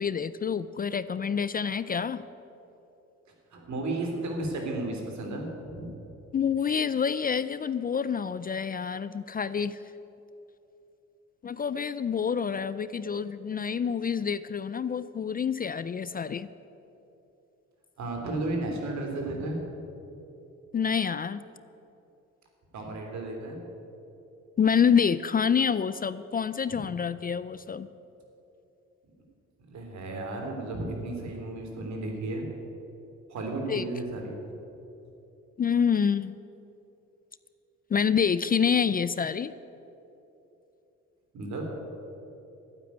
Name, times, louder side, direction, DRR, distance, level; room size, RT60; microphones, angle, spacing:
voice 1, 0.0-2.2 6.3-9.8 11.4-16.5 20.7-21.4 24.6-27.9 33.7-33.9 35.6-36.4 37.9-39.5, left 7 dB, 30° left, 15 dB, 0.4 m, -27 dB
voice 2, 3.5-5.9 18.0-19.6 22.7-23.6 26.7-26.8 29.6-32.5 33.3-34.3 41.3-41.6, right 2 dB, 65° right, 2 dB, 3.3 m, -33 dB
12.0 x 9.5 x 9.4 m, 2.9 s
cardioid pair, 90°, 30 cm